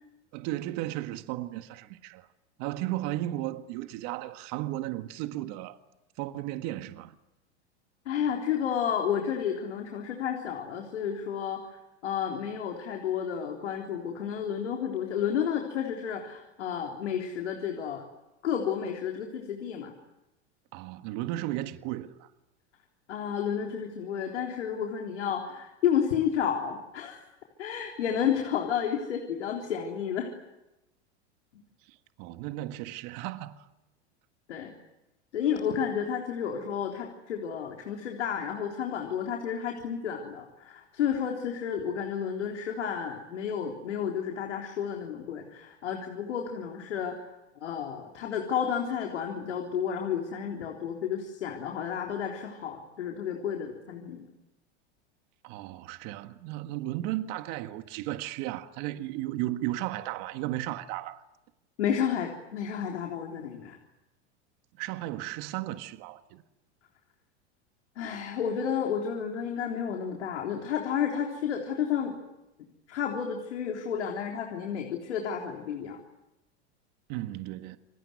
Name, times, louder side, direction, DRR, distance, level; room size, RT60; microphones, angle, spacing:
voice 1, 0.3-2.3 2.6-5.8 6.2-7.1 20.7-22.3 31.9-33.7 55.4-61.2 64.8-66.4 77.1-77.8, right 15 dB, 55° right, 1.7 m, -35 dB
voice 2, 8.1-18.0 18.4-19.9 23.1-27.2 27.6-30.3 34.5-34.7 35.3-47.2 47.6-54.3 61.8-63.8 68.0-72.2 72.9-76.0, left 8 dB, 85° left, 3.8 m, -31 dB
28.5 x 20.5 x 9.5 m
hypercardioid pair, 110°, 34 cm